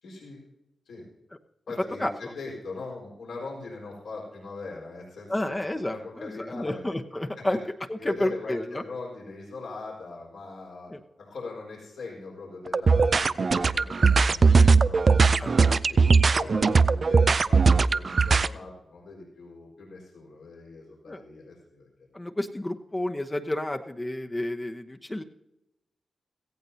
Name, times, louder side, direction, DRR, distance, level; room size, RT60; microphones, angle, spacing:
voice 1, 0.0-0.4 0.9-1.0 1.7-5.6 5.9-6.8 7.4-7.5 8.0-10.9 11.2-15.3 15.9-21.9, left 3 dB, 85° left, -3 dB, 4.5 m, -41 dB
voice 2, 2.0-2.3 5.3-7.6 7.9-8.8 10.9-11.0 15.4-15.8 21.1-21.2 22.1-25.2, left 1 dB, 20° left, 4 dB, 1.0 m, -31 dB
sound 1, 12.7-18.5, right 4 dB, 55° right, 0.4 m, -19 dB
17.5 x 15.0 x 2.8 m, 0.85 s
cardioid pair, 50°, 0 cm